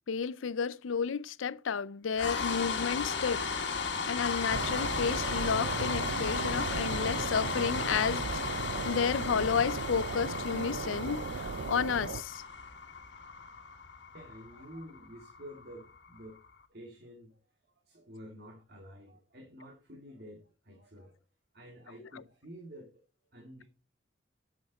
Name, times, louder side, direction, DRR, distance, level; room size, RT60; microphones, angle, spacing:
voice 1, 0.1-3.5 4.1-8.3 8.8-11.3 11.7-12.4, left 6 dB, 90° left, 0.5 m, -31 dB
sound 1, 2.1-16.3, left 5 dB, 65° left, 1.8 m, -35 dB
sound 2, 4.5-12.2, right 4 dB, 75° right, 0.5 m, -37 dB
voice 2, 14.1-16.4 16.7-21.2 21.5-23.0 23.3-23.6, equal, 55° right, 2.5 m, -50 dB
9.4 x 7.8 x 4.2 m
head